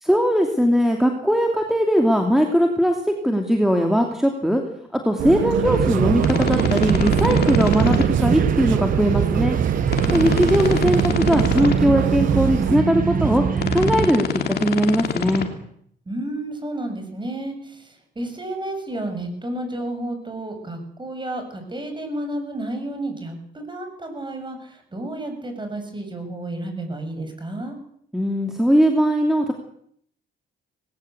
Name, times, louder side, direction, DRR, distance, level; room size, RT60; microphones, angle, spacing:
voice 1, 0.0-4.6 4.9-9.6 10.1-15.5 28.1-29.5, equal, ahead, 3 dB, 2.8 m, -20 dB
sound 1, 5.2-12.8, right 12 dB, 75° right, 0.8 m, -24 dB
sound 2, 5.6-14.1, right 6 dB, 45° right, 1.7 m, -23 dB
sound 3, 6.2-8.0 9.9-11.7 13.6-15.4, left 6 dB, 55° left, 3.0 m, -26 dB
voice 2, 10.0-10.3 16.1-27.8, right 1 dB, 25° right, 6 dB, 7.4 m, -31 dB
20.5 x 18.0 x 8.2 m, 0.67 s
cardioid pair, 90°, 20 cm